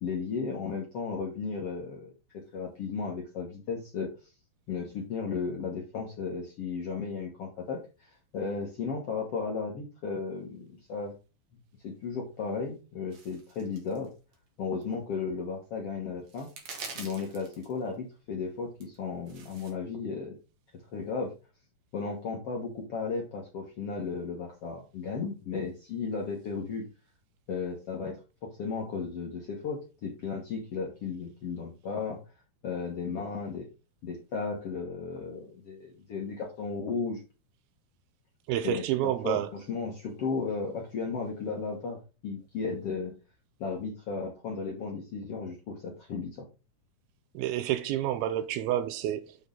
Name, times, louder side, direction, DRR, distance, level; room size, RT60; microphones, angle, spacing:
voice 1, 0.0-4.3 4.7-11.1 11.8-14.1 14.6-16.5 16.9-20.3 20.9-21.3 21.9-26.9 27.5-32.2 32.6-33.7 34.0-37.2 38.6-43.1 43.6-46.5, left 5 dB, 75° left, 1.3 m, -35 dB
sound 1, 13.1-14.1 14.3-14.4 14.8-14.9 15.9-16.0 16.3-17.7 18.8-19.7, right 4 dB, 50° right, 2.0 m, -44 dB
voice 2, 38.5-39.5 47.3-49.4, right 12 dB, 80° right, 2.3 m, -29 dB
7.0 x 6.3 x 3.9 m
omnidirectional pair, 4.8 m